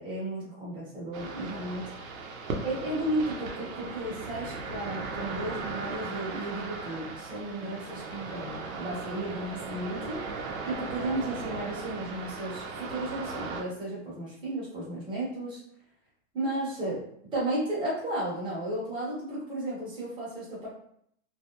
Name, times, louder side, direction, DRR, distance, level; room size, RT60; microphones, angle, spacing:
voice 1, 0.0-1.9 2.6-10.2 10.6-15.6 16.3-17.0 17.3-20.7, right 1 dB, 10° right, -8 dB, 0.8 m, -34 dB
sound 1, 1.1-13.6, right 4 dB, 80° right, 0.7 m, -37 dB
2.5 x 2.1 x 2.8 m, 0.69 s
supercardioid pair, 155°, 40 cm